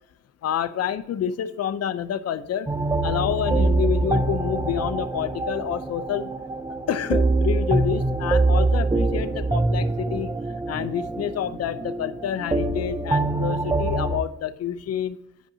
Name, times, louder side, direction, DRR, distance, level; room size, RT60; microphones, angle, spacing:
voice 1, 0.4-2.7 3.0-6.3 6.9-10.3 10.7-15.2, left 9 dB, 55° left, 13 dB, 0.6 m, -28 dB
sound 1, 2.7-14.2, right 2 dB, 10° right, 0.4 m, -24 dB
9.8 x 5.3 x 2.7 m, 0.82 s
cardioid pair, 90°, 30 cm